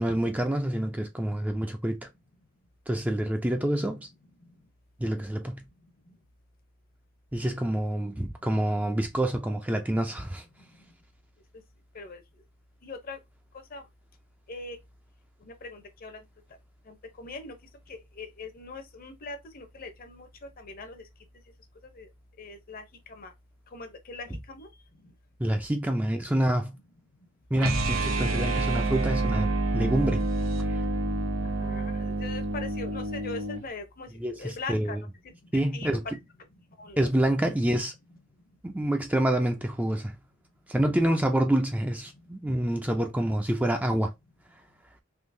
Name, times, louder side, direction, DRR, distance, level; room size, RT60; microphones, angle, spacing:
voice 1, 0.0-2.0 2.9-4.1 5.0-5.6 7.3-10.4 25.4-26.8 27.5-30.3 34.2-35.0 35.5-36.0 37.0-37.9 38.6-40.2 40.7-44.1, right 1 dB, 10° right, 0.4 m, -27 dB
voice 2, 7.5-7.8 11.9-12.2 12.8-13.2 13.7-13.8 14.5-14.8 15.6-16.2 16.9-17.5 17.9-20.3 20.6-21.0 22.0-22.1 22.4-22.8 23.1-23.3 23.7-24.7 31.6-35.0 35.7-36.0 36.8-37.0, left 3 dB, 45° left, 0.8 m, -41 dB
sound 1, 27.6-33.7, right 2 dB, 85° right, 0.6 m, -28 dB
3.7 x 2.8 x 2.6 m
head